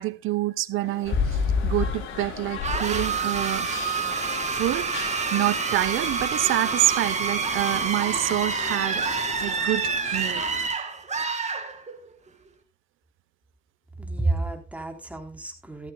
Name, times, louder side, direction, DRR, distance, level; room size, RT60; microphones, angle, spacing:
voice 1, 0.0-3.7 4.5-10.4, right 15 dB, 85° right, 0.8 m, -27 dB
sound 1, 0.7-9.5, left 5 dB, 55° left, 3.6 m, -44 dB
sound 2, 1.0-10.7, left 5 dB, 80° left, 3.8 m, -33 dB
sound 3, 2.6-12.2, right 5 dB, 35° right, 2.3 m, -28 dB
voice 2, 14.0-15.9, right 2 dB, 5° right, 3.5 m, -30 dB
14.0 x 14.0 x 2.3 m
cardioid pair, 90°, 20 cm